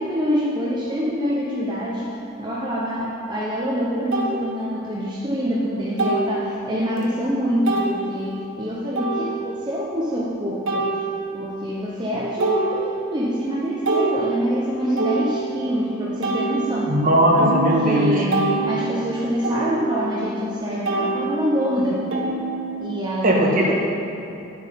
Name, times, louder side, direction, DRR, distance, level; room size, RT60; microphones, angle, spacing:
voice 1, 0.0-10.9 11.3-17.0 17.4-17.6 17.8-22.0 22.8-23.7, equal, 20° right, -6 dB, 1.0 m, -25 dB
sound 1, 3.3-3.4 4.1-4.3 6.0-6.4 7.0-7.1 7.7-7.9 9.0-9.6 10.7-11.5 12.0-12.1 12.4-13.2 13.6-15.8 16.2-20.6 20.9-23.2, right 3 dB, 75° right, 1.5 m, -26 dB
voice 2, 16.9-18.3 23.2-23.7, equal, 40° right, -2 dB, 1.4 m, -18 dB
9.8 x 7.8 x 5.3 m, 2.9 s
head